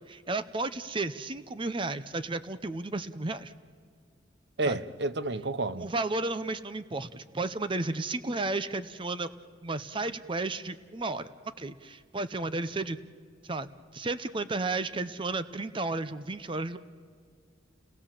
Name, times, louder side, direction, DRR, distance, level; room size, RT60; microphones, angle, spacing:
voice 1, 0.1-3.5 4.7-4.8 5.8-9.3 9.6-11.3 11.6-13.0 13.4-13.7 13.9-16.8, right 3 dB, 25° right, 0.7 m, -33 dB
voice 2, 4.6-5.9, right 2 dB, 60° right, 0.8 m, -30 dB
30.0 x 19.0 x 7.5 m
head